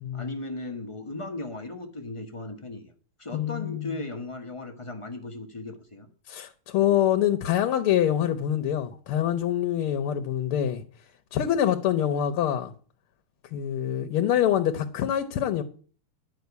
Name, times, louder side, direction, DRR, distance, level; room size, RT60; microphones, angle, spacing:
voice 1, 0.1-2.9 3.2-6.1, left 2 dB, 25° left, 0.7 m, -37 dB
voice 2, 3.3-3.9 6.3-10.8 11.3-12.7 13.5-15.6, left 10 dB, 80° left, 1.8 m, -25 dB
10.5 x 6.0 x 8.1 m
omnidirectional pair, 2.4 m